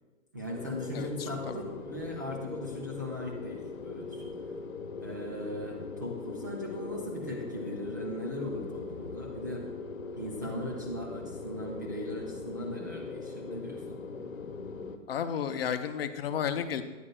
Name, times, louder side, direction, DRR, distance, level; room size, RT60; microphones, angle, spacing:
voice 1, 0.3-4.3 5.0-9.7 10.1-14.0, equal, 15° right, -5 dB, 0.3 m, -38 dB
sound 1, 0.6-15.0, left 4 dB, 75° left, 1.0 m, -40 dB
voice 2, 0.9-1.6 15.1-16.8, left 8 dB, 45° left, 9 dB, 0.7 m, -33 dB
13.0 x 10.0 x 2.3 m, 1.2 s
hypercardioid pair, 135°, 40 cm